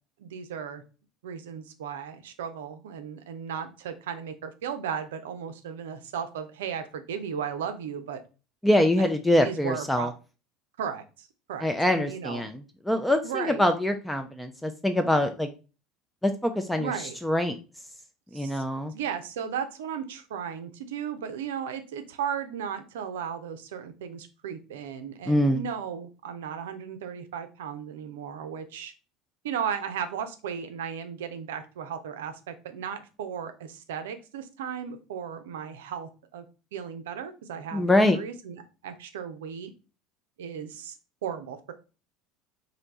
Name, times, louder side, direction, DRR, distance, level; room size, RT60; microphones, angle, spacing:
voice 1, 0.2-0.8 1.2-8.2 9.0-10.1 10.8-12.5 13.2-13.7 16.8-17.1 18.3-18.6 18.9-28.9 29.4-36.4 36.7-39.7 40.4-41.0 41.2-41.7, right 8 dB, 70° right, 8 dB, 0.5 m, -35 dB
voice 2, 8.6-10.1 11.6-12.6 12.9-15.5 16.2-16.9 17.2-17.6 18.3-18.9 25.3-25.6 37.7-38.2, left 1 dB, 5° left, 6 dB, 0.4 m, -24 dB
3.2 x 2.7 x 3.9 m, 0.33 s
figure-of-eight pair, 70°, 0 cm